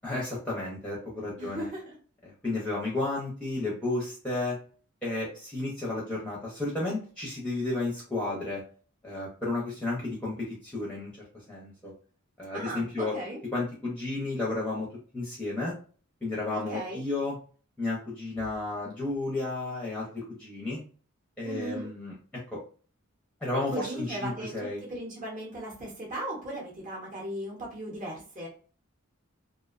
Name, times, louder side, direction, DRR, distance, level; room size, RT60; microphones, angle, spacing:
voice 1, 0.0-1.7 2.2-4.6 5.0-8.6 9.0-11.1 11.5-11.9 12.4-13.2 13.5-14.9 15.1-15.7 16.2-17.4 17.8-20.8 21.4-22.6 23.4-24.8, left 2 dB, 5° left, -5 dB, 0.5 m, -32 dB
voice 2, 1.4-1.9 12.5-13.4 16.5-17.0 21.4-21.9 23.7-28.5, right 1 dB, 35° right, -3 dB, 0.7 m, -37 dB
2.5 x 2.1 x 2.4 m, 0.40 s
head